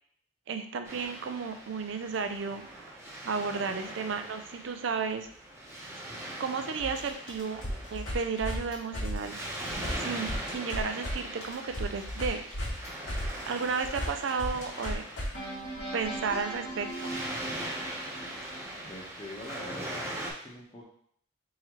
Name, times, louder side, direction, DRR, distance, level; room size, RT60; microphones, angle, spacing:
voice 1, 0.5-3.0 3.2-5.3 6.4-7.6 7.9-9.4 10.0-12.5 13.4-15.1 15.9-17.1, right 5 dB, 65° right, 7 dB, 0.4 m, -33 dB
Waves surf, 0.8-20.3, right 1 dB, 15° right, 0.9 m, -41 dB
sound 1, 6.8-11.1 11.4-18.6, equal, 70° left, 1.9 m, -37 dB
voice 2, 18.8-20.8, left 1 dB, 25° left, -3 dB, 0.9 m, -44 dB
4.1 x 3.8 x 3.0 m, 0.64 s
head